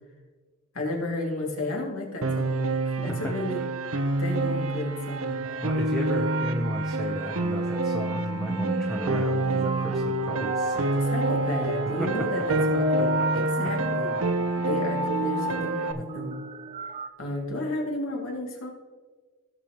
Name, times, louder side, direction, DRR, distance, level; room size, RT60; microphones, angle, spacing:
voice 1, 0.7-3.6 4.2-5.4 11.0-14.2 14.6-16.4 17.2-18.7, left 2 dB, 70° left, -1 dB, 2.4 m, -32 dB
Piano, 2.2-15.9, right 2 dB, 70° right, 0.7 m, -27 dB
sound 1, 5.3-17.1, equal, 25° right, 0.3 m, -36 dB
voice 2, 5.6-11.1 12.0-12.1 13.6-13.7, equal, ahead, -1 dB, 0.7 m, -34 dB
16.5 x 6.8 x 3.0 m, 1.4 s
head